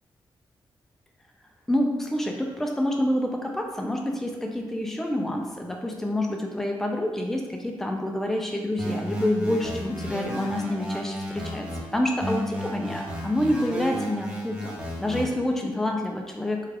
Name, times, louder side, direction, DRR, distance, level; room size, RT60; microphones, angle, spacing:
voice 1, 1.7-11.7 11.9-14.7 15.0-16.7, left 1 dB, 5° left, 2 dB, 0.4 m, -27 dB
sound 1, 8.8-11.8 12.2-15.2, equal, 10° right, 0.8 m, -33 dB
5.5 x 2.4 x 3.4 m, 1.2 s
wide cardioid pair, 115°, 9 cm